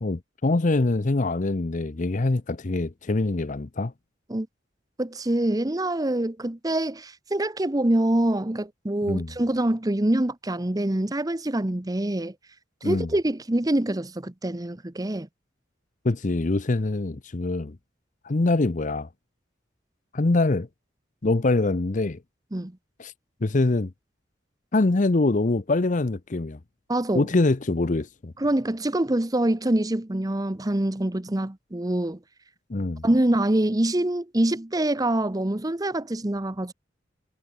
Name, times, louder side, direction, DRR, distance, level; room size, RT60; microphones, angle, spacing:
voice 1, 0.0-3.9 9.0-9.3 12.8-13.1 16.0-17.8 18.2-19.1 20.1-20.7 21.2-22.2 23.0-23.1 23.4-23.9 24.7-26.6 27.1-28.3 32.7-33.0, left 2 dB, 45° left, 0.7 m, -24 dB
voice 2, 5.0-12.3 12.8-15.3 22.5-22.7 26.9-27.3 28.4-32.2 33.0-36.7, right 1 dB, 20° right, 0.9 m, -25 dB
head